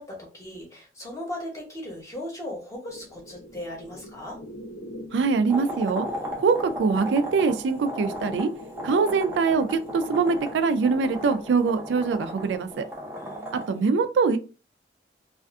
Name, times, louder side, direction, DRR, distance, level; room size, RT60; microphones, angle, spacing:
voice 1, 0.0-4.4 13.2-13.8, left 1 dB, 20° left, 0.8 m, -38 dB
sound 1, 2.9-12.7, equal, 90° left, 0.6 m, -44 dB
voice 2, 5.1-6.1 6.4-8.5 8.8-12.9 13.5-14.4, right 4 dB, 85° right, 0.3 m, -23 dB
sound 2, 5.5-13.8, equal, 15° right, 0.5 m, -36 dB
2.4 x 2.4 x 2.3 m
head